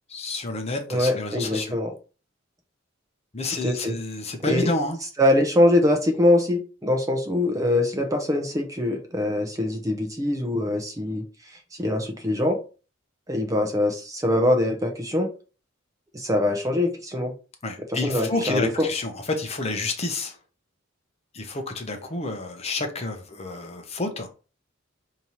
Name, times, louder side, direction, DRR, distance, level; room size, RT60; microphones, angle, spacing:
voice 1, 0.1-1.8 3.3-5.0 17.6-20.4 21.3-24.3, left 2 dB, 30° left, 0.7 m, -29 dB
voice 2, 0.9-1.9 3.6-3.9 4.5-4.7 5.2-11.2 11.8-12.6 13.3-15.3 16.1-17.3 17.9-18.9, left 1 dB, 15° right, 0.6 m, -23 dB
5.2 x 2.8 x 3.0 m
head